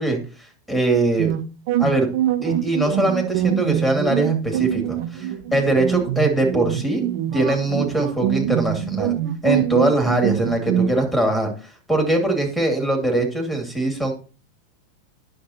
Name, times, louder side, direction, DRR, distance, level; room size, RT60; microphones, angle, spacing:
voice 1, 0.0-1.4 1.8-2.1 2.4-7.0 7.3-9.1 9.4-14.1, right 2 dB, ahead, 3 dB, 2.5 m, -22 dB
sound 1, 1.2-10.9, right 11 dB, 50° right, 0.7 m, -24 dB
10.5 x 6.7 x 2.9 m, 0.36 s
figure-of-eight pair, 90°, 0 cm